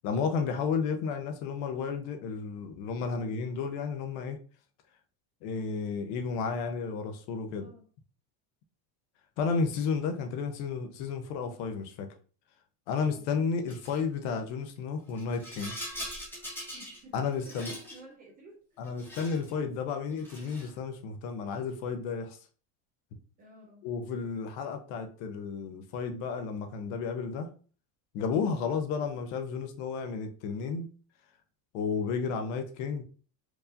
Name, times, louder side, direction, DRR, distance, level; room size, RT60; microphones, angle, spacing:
voice 1, 0.0-4.4 5.4-7.7 9.4-12.1 12.9-15.8 17.1-17.7 18.8-22.4 23.8-27.5 28.1-30.9 31.7-33.0, left 5 dB, 55° left, 0.8 m, -32 dB
voice 2, 3.1-3.4 7.6-7.9 13.0-13.3 16.7-18.9 23.4-23.8, right 1 dB, 20° right, 0.3 m, -53 dB
Rattle, 13.7-14.0 15.1-17.0 17.3-18.0 18.8-19.5 20.1-20.8, equal, 5° left, 1.0 m, -42 dB
4.6 x 2.7 x 2.6 m
cardioid pair, 160°, 49 cm